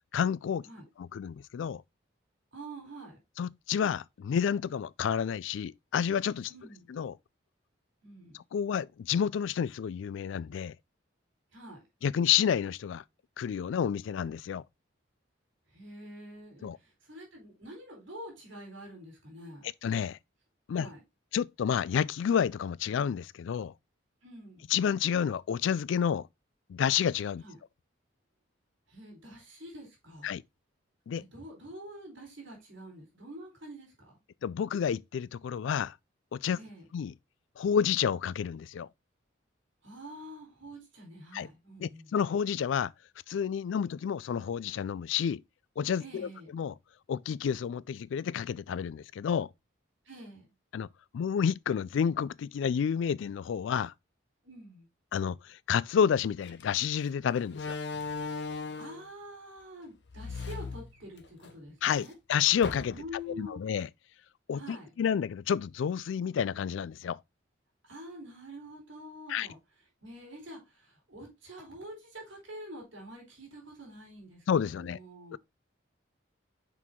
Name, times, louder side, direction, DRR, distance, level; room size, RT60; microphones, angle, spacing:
voice 1, 0.1-0.7 1.0-1.8 3.4-6.5 6.9-7.2 8.3-10.7 12.0-13.0 13.4-14.6 16.6-16.8 19.8-20.2 20.7-20.9 21.3-23.7 24.7-26.3 26.7-27.4 30.2-30.4 31.1-31.2 34.4-36.0 36.3-36.6 36.9-37.1 37.6-38.9 41.3-41.5 41.8-42.9 43.3-45.4 45.8-46.7 47.1-49.5 50.7-50.9 51.1-53.9 55.1-57.8 61.8-63.0 63.4-63.9 64.5-67.2 69.3-69.5 74.5-75.0 75.3-75.4, left 8 dB, 75° left, 0.3 m, -30 dB
voice 2, 2.5-3.2 6.5-6.9 8.0-8.4 11.5-11.8 15.7-19.7 20.7-21.0 24.2-24.7 27.4-27.6 28.9-30.3 31.1-34.2 36.5-36.9 39.8-42.1 46.0-46.5 50.0-50.5 54.4-54.9 58.7-62.1 62.9-63.6 64.5-64.9 67.8-69.6 70.0-75.4, equal, 80° right, 3.6 m, -47 dB
Slam, 56.4-56.6 57.5-59.1 60.1-61.5 61.9-62.0 62.6-63.2, left 4 dB, 60° left, 0.8 m, -37 dB
6.1 x 4.6 x 3.6 m
head